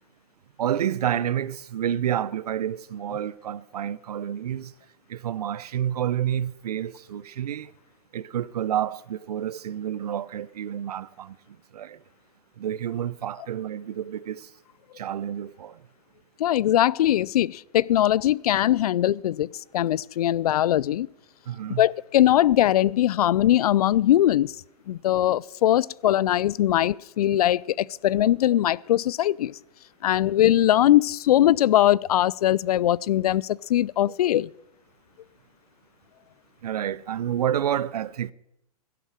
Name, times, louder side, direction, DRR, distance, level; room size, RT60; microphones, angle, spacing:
voice 1, 0.6-4.7 5.1-7.7 8.1-11.4 11.7-12.0 12.6-14.5 15.0-15.8 21.5-21.8 36.6-38.3, right 10 dB, 80° right, 0.7 m, -29 dB
voice 2, 16.4-19.5 19.7-21.1 21.8-24.5 24.9-29.6 30.0-34.5, left 12 dB, 75° left, 0.4 m, -21 dB
12.0 x 11.0 x 6.4 m
hypercardioid pair, 130°, 20 cm